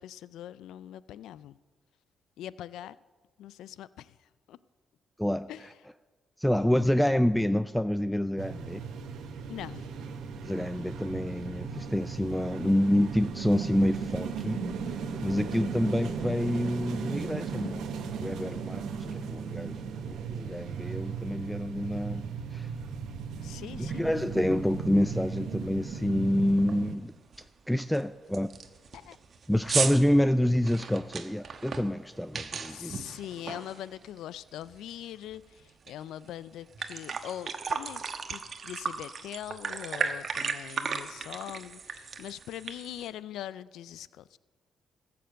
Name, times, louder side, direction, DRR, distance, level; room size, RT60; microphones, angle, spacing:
voice 1, 0.0-1.6 2.4-3.0 3.4-4.2 4.5-4.6 5.5-5.6 9.5-9.9 23.4-24.1 28.9-29.2 32.7-38.0 38.3-44.4, left 11 dB, 90° left, 18 dB, 0.3 m, -42 dB
voice 2, 5.2-5.7 6.4-8.8 10.4-14.7 14.9-17.8 18.2-18.8 19.3-19.8 20.1-22.2 22.5-22.7 23.8-27.1 27.7-28.5 29.5-32.9, left 1 dB, 5° left, 12 dB, 0.3 m, -27 dB
sound 1, 8.4-27.0, right 5 dB, 85° right, 1.0 m, -36 dB
sound 2, 25.0-25.1 25.5-25.8 26.1-26.2 26.6-26.9 27.3-27.4 27.9-28.0 28.3-34.3 34.6-35.9 36.3-36.4 36.6-43.1, right 5 dB, 50° right, 1.1 m, -35 dB
14.0 x 6.8 x 7.6 m, 1.4 s
cardioid pair, 85°, 0 cm